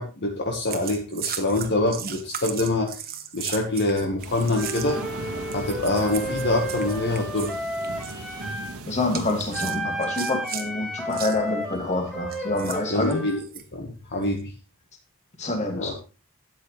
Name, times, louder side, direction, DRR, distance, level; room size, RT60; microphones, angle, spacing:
voice 1, 0.0-2.9 3.3-5.0 5.5-7.5 12.9-13.4 13.7-14.5 15.7-15.9, left 2 dB, 50° left, 1.7 m, -25 dB
sound 1, 0.7-5.1 5.5-7.6 7.8-8.2 9.1-10.7 11.1-11.4 12.3-13.6 14.2-14.4, right 9 dB, 45° right, 1.3 m, -36 dB
sound 2, 4.2-9.6, right 2 dB, 70° right, 1.9 m, -37 dB
Wind instrument woodwind instrument, 4.5-8.7 9.5-13.4, equal, 5° left, 3.0 m, -32 dB
voice 2, 8.9-13.2 15.4-15.9, left 2 dB, 30° left, 2.5 m, -27 dB
12.5 x 9.0 x 3.4 m
head